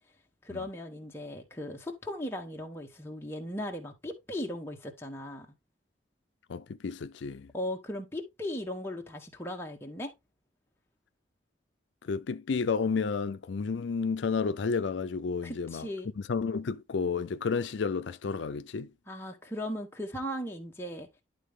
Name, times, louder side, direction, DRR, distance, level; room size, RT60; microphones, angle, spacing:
voice 1, 0.4-5.5 7.5-10.1 15.4-16.1 19.1-21.1, left 1 dB, 15° left, 1.3 m, -37 dB
voice 2, 6.5-7.5 12.0-15.9 16.3-18.9, left 5 dB, 80° left, 0.5 m, -31 dB
11.0 x 4.0 x 3.6 m
head